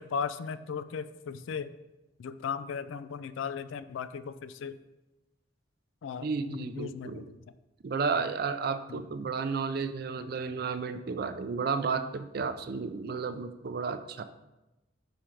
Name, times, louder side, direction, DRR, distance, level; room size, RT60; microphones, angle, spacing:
voice 1, 0.0-1.7 2.2-4.8 6.0-7.4 8.9-9.0, left 6 dB, 70° left, 13 dB, 0.3 m, -37 dB
voice 2, 6.2-7.3 7.8-14.2, right 5 dB, 50° right, 10 dB, 0.4 m, -32 dB
5.1 x 4.9 x 4.4 m, 1.0 s
head